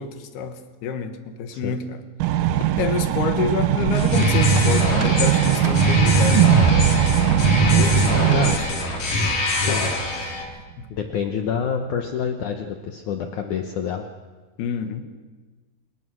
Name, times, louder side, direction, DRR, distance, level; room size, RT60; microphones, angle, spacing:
voice 1, 0.0-2.0 2.8-6.6 7.7-8.8 10.8-10.9 14.6-15.0, left 6 dB, 70° left, 8 dB, 3.2 m, -28 dB
sound 1, 2.2-8.5, right 12 dB, 90° right, 1.9 m, -20 dB
sound 2, 3.9-10.4, left 2 dB, 40° left, 3.8 m, -23 dB
sound 3, 6.3-10.7, right 6 dB, 65° right, 2.2 m, -23 dB
voice 2, 10.9-14.0, left 7 dB, 90° left, 5 dB, 1.7 m, -27 dB
28.0 x 17.5 x 6.3 m, 1.3 s
omnidirectional pair, 5.1 m